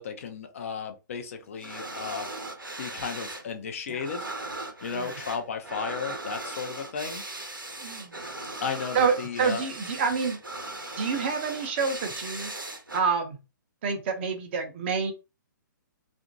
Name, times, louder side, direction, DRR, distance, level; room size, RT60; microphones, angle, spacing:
voice 1, 0.0-2.3 2.8-4.3 4.8-7.2 8.6-9.6, left 6 dB, 40° left, 0.5 m, -34 dB
sound 1, 1.6-3.5 3.7-13.0, right 2 dB, 85° right, 0.8 m, -38 dB
voice 2, 7.8-8.2 8.9-10.4 10.9-12.5 12.9-13.4 13.8-15.1, right 5 dB, 35° right, 0.6 m, -28 dB
2.8 x 2.5 x 2.5 m
figure-of-eight pair, 125°, 11 cm